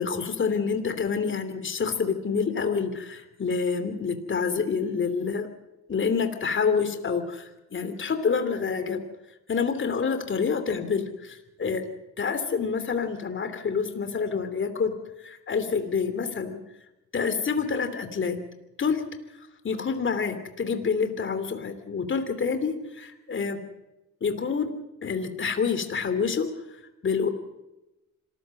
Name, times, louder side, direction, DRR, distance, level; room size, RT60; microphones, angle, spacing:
voice 1, 0.0-5.5 5.9-9.0 9.5-11.9 12.2-14.9 15.2-16.6 17.1-18.4 18.8-19.1 19.6-23.6 24.2-24.7 25.0-26.5 27.0-27.3, left 5 dB, 40° left, 9 dB, 3.1 m, -27 dB
26.0 x 15.0 x 7.8 m, 0.99 s
cardioid pair, 90°, 30 cm